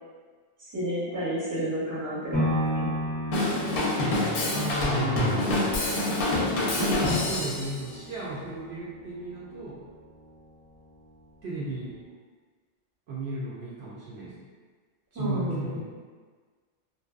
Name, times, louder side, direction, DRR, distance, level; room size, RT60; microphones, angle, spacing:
voice 1, 0.7-2.9 15.1-15.8, equal, 20° right, -10 dB, 0.8 m, -31 dB
sound 1, 2.3-10.4 10.9-11.0, equal, 15° left, 0.4 m, -34 dB
Drum kit / Drum, 3.3-7.7, left 2 dB, 60° left, 0.7 m, -26 dB
voice 2, 4.5-5.7 6.7-9.8 11.4-12.0 13.1-14.3 15.1-15.8, right 1 dB, 70° right, -7 dB, 0.8 m, -34 dB
2.6 x 2.2 x 2.3 m, 1.5 s
omnidirectional pair, 1.2 m